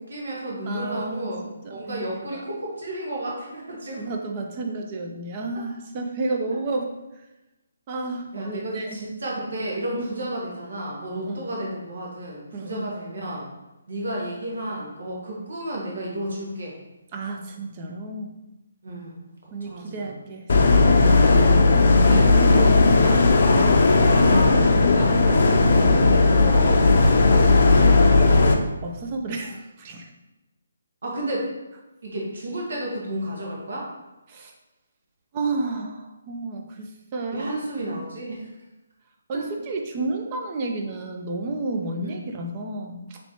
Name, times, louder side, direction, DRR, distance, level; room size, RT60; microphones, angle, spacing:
voice 1, 0.0-4.0 8.3-13.4 13.9-16.7 18.8-19.2 19.6-20.1 21.9-23.7 24.0-27.6 31.0-31.5 32.0-33.9 37.3-38.5 39.3-39.4 42.0-42.1, right 1 dB, 70° right, -3 dB, 1.5 m, -32 dB
voice 2, 0.7-1.3 1.6-2.1 2.3-2.4 3.9-6.9 7.9-9.0 10.0-10.3 11.1-11.5 12.5-12.9 17.1-18.3 19.5-21.1 25.8-26.1 28.0-28.4 28.8-30.1 34.3-34.5 35.3-37.5 39.3-43.2, right 2 dB, 30° right, 2 dB, 0.5 m, -31 dB
sound 1, 20.5-28.5, left 3 dB, 55° left, 0.5 m, -16 dB
4.2 x 3.2 x 2.9 m, 1.0 s
hypercardioid pair, 155°, 0 cm